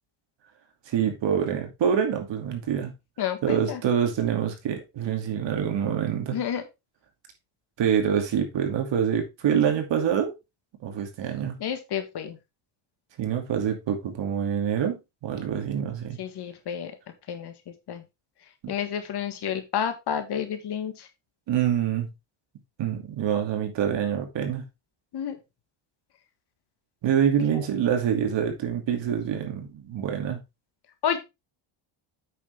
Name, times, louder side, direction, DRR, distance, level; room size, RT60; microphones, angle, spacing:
voice 1, 0.9-2.9 3.4-6.4 7.8-10.3 10.8-11.6 13.2-16.2 18.6-18.7 21.5-22.1 22.8-24.6 27.0-30.4, right 8 dB, 60° right, 2.7 m, -26 dB
voice 2, 3.2-3.8 6.3-6.6 11.6-12.4 16.2-16.9 17.3-18.0 18.7-21.1 25.1-25.4 27.4-27.6 31.0-31.2, left 8 dB, 50° left, 1.7 m, -30 dB
8.6 x 6.5 x 3.5 m
cardioid pair, 130°, 50 cm